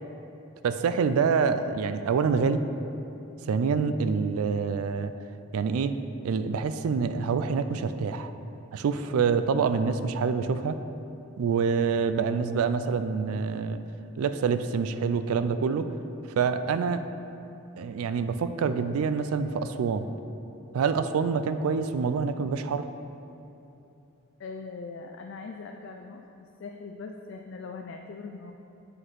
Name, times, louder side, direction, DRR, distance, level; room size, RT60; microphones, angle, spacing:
voice 1, 0.6-2.6 3.5-5.1 5.5-5.9 6.2-8.3 8.7-10.8 11.4-13.8 14.2-15.9 16.4-17.0 17.8-20.1 20.7-22.8, right 5 dB, 85° right, 10 dB, 0.3 m, -26 dB
voice 2, 24.4-26.2 26.6-28.5, left 4 dB, 55° left, 3 dB, 0.3 m, -40 dB
7.8 x 5.9 x 3.2 m, 2.8 s
head